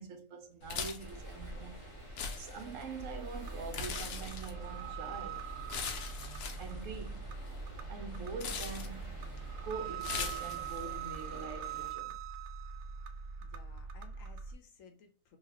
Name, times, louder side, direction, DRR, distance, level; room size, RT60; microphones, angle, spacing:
voice 1, 0.0-1.8 2.4-5.4 6.6-7.3 7.9-9.2 9.6-12.2, right 5 dB, 65° right, 0.9 m, -44 dB
sound 1, 0.6-11.0, left 5 dB, 85° left, 1.2 m, -43 dB
sound 2, 1.0-11.9, right 1 dB, 25° right, 0.8 m, -49 dB
sound 3, 3.0-14.5, right 6 dB, 85° right, 1.1 m, -43 dB
voice 2, 13.4-15.4, left 5 dB, 65° left, 1.0 m, -57 dB
4.0 x 2.3 x 2.9 m
omnidirectional pair, 1.6 m